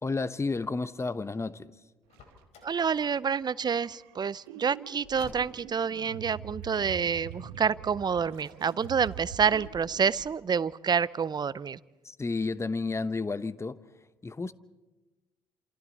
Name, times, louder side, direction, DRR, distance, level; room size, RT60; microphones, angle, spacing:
voice 1, 0.0-1.7 12.0-13.8 14.2-14.5, left 3 dB, 25° left, 1.0 m, -31 dB
Car, 2.1-2.8 5.0-5.8, left 4 dB, 65° left, 4.3 m, -49 dB
sound 1, 2.2-2.9 3.4-10.3, right 8 dB, 80° right, 1.3 m, -45 dB
voice 2, 2.6-11.8, right 6 dB, 35° right, 0.7 m, -28 dB
29.0 x 27.5 x 4.3 m
hypercardioid pair, 50°, 12 cm